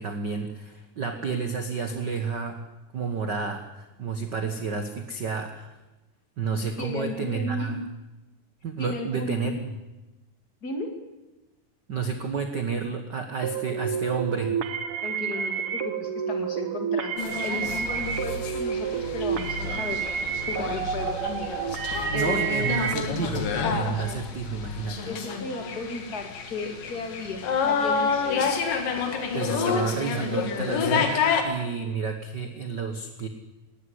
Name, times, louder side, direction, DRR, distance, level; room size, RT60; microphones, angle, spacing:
voice 1, 0.0-2.6 2.9-5.7 6.4-7.8 8.6-9.7 11.9-14.6 22.1-25.1 29.3-33.3, right 5 dB, 90° right, 6 dB, 0.9 m, -30 dB
voice 2, 6.8-7.8 8.8-9.6 10.6-10.9 15.0-20.0 20.5-21.5 22.1-22.7 25.0-28.5, left 3 dB, 30° left, 5 dB, 2.4 m, -34 dB
sound 1, 13.4-22.9, right 7 dB, 65° right, 1.4 m, -29 dB
sound 2, 17.2-31.4, left 6 dB, 70° left, 3.6 m, -29 dB
sound 3, 17.6-24.8, left 3 dB, 85° left, 4.0 m, -39 dB
19.0 x 15.0 x 9.7 m, 1.0 s
omnidirectional pair, 4.1 m